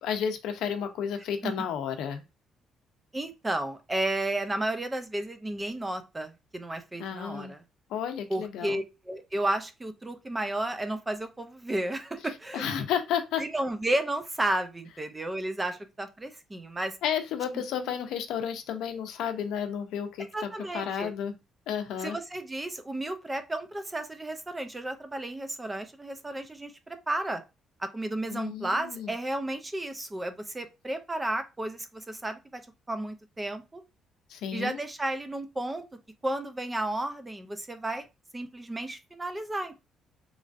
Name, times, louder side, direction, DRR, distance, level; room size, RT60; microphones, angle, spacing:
voice 1, 0.0-2.2 7.0-7.5 7.9-8.8 12.5-13.4 17.0-21.3 21.7-22.2 28.3-29.1 34.3-34.8, left 8 dB, 85° left, 7 dB, 0.5 m, -32 dB
voice 2, 3.1-7.6 8.3-12.7 13.4-17.0 20.3-21.1 22.0-27.4 27.8-32.6 32.9-33.8 34.5-35.8 36.2-38.1 38.3-39.7, right 1 dB, 10° right, 8 dB, 0.3 m, -32 dB
3.0 x 2.4 x 2.5 m, 0.26 s
cardioid pair, 170°, 0 cm